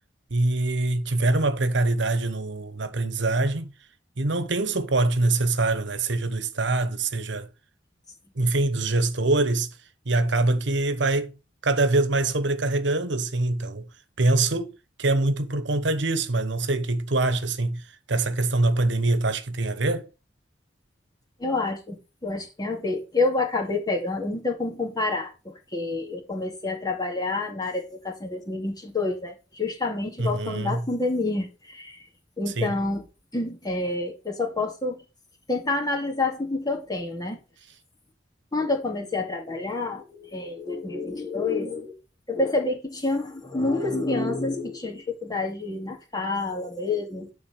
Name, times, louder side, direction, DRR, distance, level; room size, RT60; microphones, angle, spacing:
voice 1, 0.3-3.7 4.2-7.5 8.3-9.8 10.0-11.4 11.6-13.9 14.2-20.1 30.2-30.9 32.6-32.8, right 2 dB, 70° right, 1.2 m, -24 dB
voice 2, 21.4-32.1 32.4-33.0 33.3-35.0 35.5-37.4 38.5-42.0 42.3-47.3, left 3 dB, 20° left, 2.4 m, -28 dB
10.0 x 4.1 x 6.9 m
head